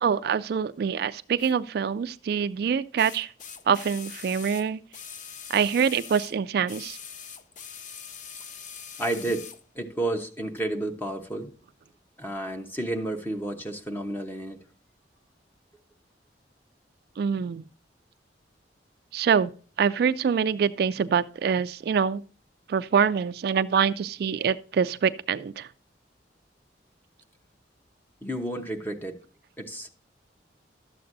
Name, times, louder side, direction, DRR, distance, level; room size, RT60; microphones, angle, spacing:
voice 1, 0.0-3.3 3.7-4.8 5.5-7.0 17.2-17.6 19.1-19.5 19.8-22.2 22.7-25.7, right 7 dB, 60° right, 0.3 m, -25 dB
sound 1, 1.4-1.5 3.0-6.4 6.7-9.6 10.6-10.7, left 7 dB, 45° left, 0.6 m, -42 dB
voice 2, 9.0-9.5 9.7-11.5 12.2-14.7 28.2-29.2 29.6-29.9, right 1 dB, 10° left, 1.0 m, -31 dB
12.0 x 7.8 x 2.6 m
head